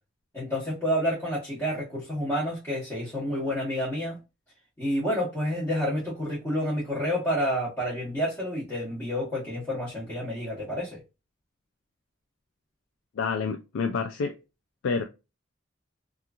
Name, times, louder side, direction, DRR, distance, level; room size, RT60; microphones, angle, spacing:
voice 1, 0.3-4.2 4.8-11.0, equal, 15° left, 1.0 m, -29 dB
voice 2, 13.2-14.4 14.8-15.0, left 5 dB, 85° left, 0.4 m, -28 dB
2.9 x 2.4 x 2.3 m
head